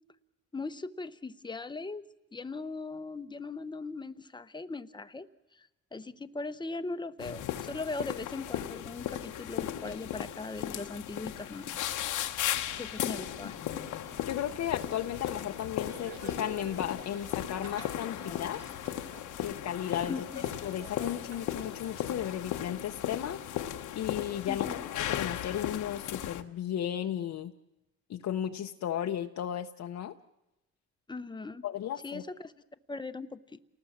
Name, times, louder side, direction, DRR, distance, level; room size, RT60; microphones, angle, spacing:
voice 1, 0.5-2.1 2.3-5.3 5.9-11.7 12.8-13.6 20.1-20.4 24.4-24.9 31.1-31.6 32.0-32.5 32.9-33.6, left 3 dB, 15° left, 11 dB, 1.0 m, -39 dB
sound 1, 7.2-26.4, left 11 dB, 85° left, 1.2 m, -36 dB
sound 2, 12.7-22.4, right 5 dB, 55° right, 3.1 m, -51 dB
voice 2, 14.3-18.6 19.4-23.7 24.0-24.7 24.9-27.5 28.1-30.1 31.6-32.2, left 10 dB, 65° left, 4 dB, 0.9 m, -35 dB
29.0 x 19.5 x 7.4 m, 0.95 s
cardioid pair, 90°, 30 cm